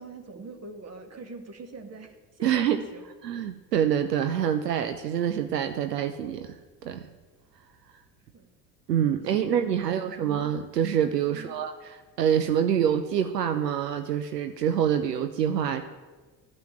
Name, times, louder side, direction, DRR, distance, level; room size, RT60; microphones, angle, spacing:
voice 1, 0.0-3.0 8.3-8.5 8.9-10.2 11.3-11.6, right 3 dB, 30° right, 5 dB, 1.9 m, -44 dB
voice 2, 2.4-2.8 3.2-6.6 6.8-7.1 8.9-15.8, right 9 dB, 75° right, 8 dB, 0.7 m, -26 dB
13.5 x 5.7 x 8.8 m, 1.3 s
figure-of-eight pair, 55°, 48 cm